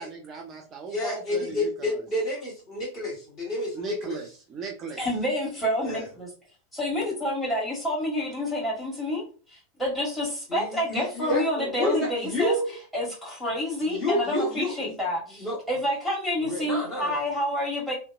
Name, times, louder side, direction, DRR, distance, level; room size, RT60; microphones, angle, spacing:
voice 1, 0.0-2.0 3.7-5.1, right 5 dB, 30° right, 1 dB, 0.4 m, -38 dB
voice 2, 0.9-4.2 5.8-6.0 10.5-12.8 13.9-14.7 15.4-15.6 16.4-17.2, left 1 dB, 30° left, -4 dB, 1.4 m, -29 dB
voice 3, 5.0-6.3 6.7-9.2 9.5-12.5 12.9-17.9, left 1 dB, 10° left, -4 dB, 1.4 m, -28 dB
2.7 x 2.1 x 2.4 m, 0.37 s
figure-of-eight pair, 90°, 0 cm